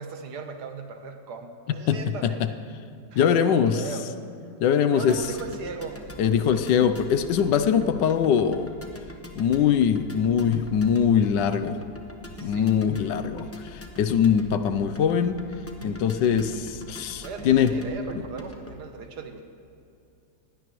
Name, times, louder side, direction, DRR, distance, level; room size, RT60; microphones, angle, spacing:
voice 1, 0.0-2.6 3.1-4.1 4.9-6.1 12.4-12.7 17.2-19.4, right 5 dB, 65° right, 6 dB, 1.6 m, -37 dB
voice 2, 1.9-2.5 3.1-3.8 4.6-5.2 6.2-8.7 9.4-11.8 12.4-15.4 15.8-17.7, left 8 dB, 80° left, 10 dB, 1.4 m, -22 dB
sound 1, 5.1-18.8, equal, 10° left, 0.6 m, -43 dB
20.5 x 16.0 x 3.1 m, 2.6 s
omnidirectional pair, 1.9 m